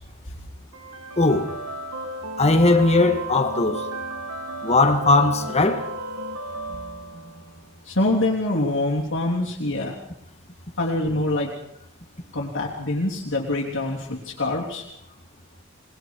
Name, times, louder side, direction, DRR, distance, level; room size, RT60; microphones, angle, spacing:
sound 1, 0.7-7.7, right 1 dB, 80° right, 2.1 m, -34 dB
voice 1, 1.2-1.5 2.4-3.9 4.6-5.9, left 2 dB, 30° left, 2.1 m, -19 dB
voice 2, 7.9-10.0 10.8-11.5 12.3-14.8, left 2 dB, 60° left, 3.5 m, -25 dB
28.5 x 20.5 x 4.9 m
head